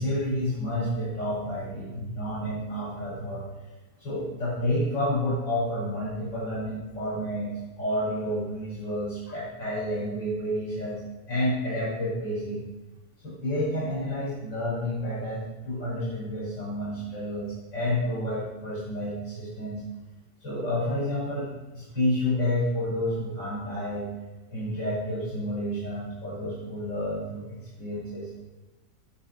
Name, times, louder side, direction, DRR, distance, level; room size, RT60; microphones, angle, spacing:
voice 1, 0.0-3.4 4.0-11.0 11.3-12.7 13.2-19.8 20.4-21.5 21.7-24.1 24.5-27.4 27.8-28.3, left 1 dB, 85° left, -8 dB, 6.3 m, -30 dB
19.0 x 8.3 x 6.0 m, 1.1 s
omnidirectional pair, 1.9 m